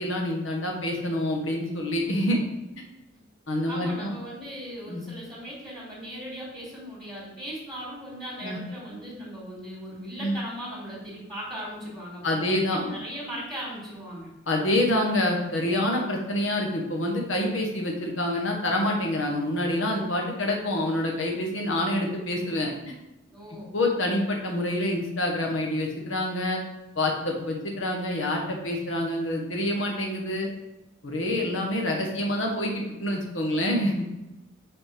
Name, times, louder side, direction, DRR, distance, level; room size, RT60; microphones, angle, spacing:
voice 1, 0.0-2.4 3.5-4.1 4.9-5.0 8.4-8.6 10.2-10.3 12.2-12.8 14.5-22.9 23.7-26.6 26.9-30.5 31.0-34.1, left 1 dB, 75° left, 0 dB, 1.7 m, -27 dB
voice 2, 3.7-14.3 23.3-23.7, equal, ahead, -6 dB, 3.0 m, -38 dB
6.2 x 4.4 x 6.1 m, 0.96 s
head